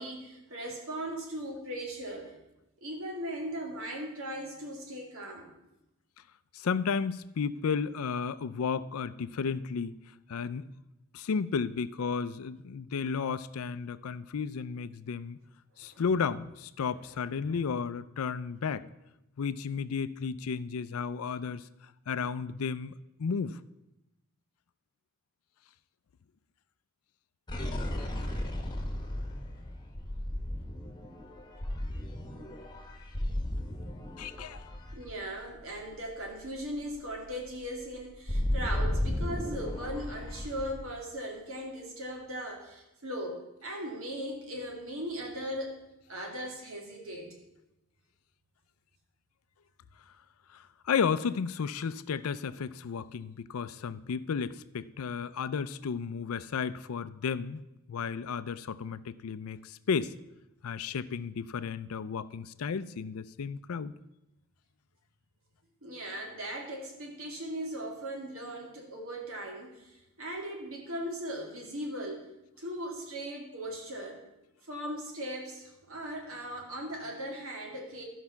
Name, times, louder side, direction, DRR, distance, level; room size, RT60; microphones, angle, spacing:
voice 1, 0.0-2.4 2.8-5.5 15.8-16.0 16.8-17.2 17.4-17.6 34.9-45.8 46.1-47.3 65.8-72.3 72.6-74.2 74.7-78.0, equal, 70° right, 1 dB, 2.4 m, -38 dB
voice 2, 6.5-9.9 10.3-10.7 11.1-15.4 15.8-18.9 19.4-21.7 22.1-22.9 23.2-23.6 34.2-34.6 50.5-57.6 57.9-60.1 60.6-63.9, left 6 dB, 85° left, 16 dB, 0.4 m, -33 dB
sound 1, 27.5-35.9 36.3-36.4 36.7-40.9, left 1 dB, 20° left, 1.3 m, -34 dB
13.0 x 5.5 x 5.8 m, 0.91 s
head